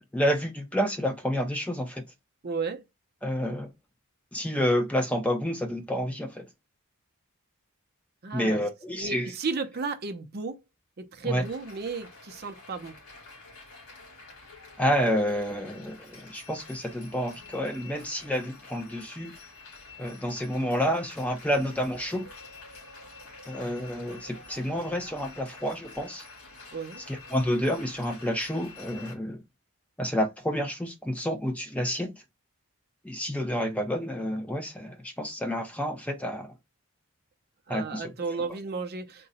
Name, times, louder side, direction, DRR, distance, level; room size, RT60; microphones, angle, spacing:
voice 1, 0.1-2.0 3.2-3.7 4.3-6.4 8.3-9.3 11.2-11.4 14.8-19.3 20.0-22.2 23.5-26.2 27.1-29.4 30.0-32.1 33.0-36.5 37.7-38.1, equal, 5° left, 0.6 m, -29 dB
voice 2, 2.4-2.8 8.2-8.6 9.0-10.6 11.0-12.9 26.7-27.0 37.7-39.3, right 4 dB, 45° right, 0.6 m, -33 dB
sound 1, 11.4-29.2, left 3 dB, 80° left, 2.0 m, -48 dB
3.8 x 2.2 x 4.0 m
head